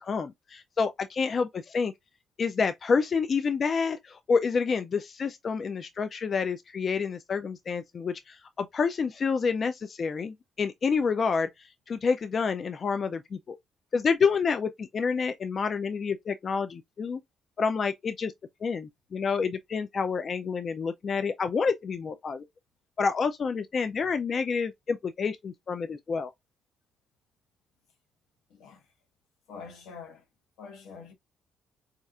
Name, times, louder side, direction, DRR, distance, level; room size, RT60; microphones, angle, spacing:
voice 1, 0.0-1.9 2.4-13.6 13.9-17.2 17.6-18.3 18.6-22.4 23.0-26.3, left 5 dB, 45° left, 0.3 m, -28 dB
voice 2, 28.5-28.9 29.5-30.2 30.6-31.1, left 5 dB, 85° left, 1.0 m, -45 dB
4.2 x 2.4 x 2.3 m
cardioid pair, 90°, 0 cm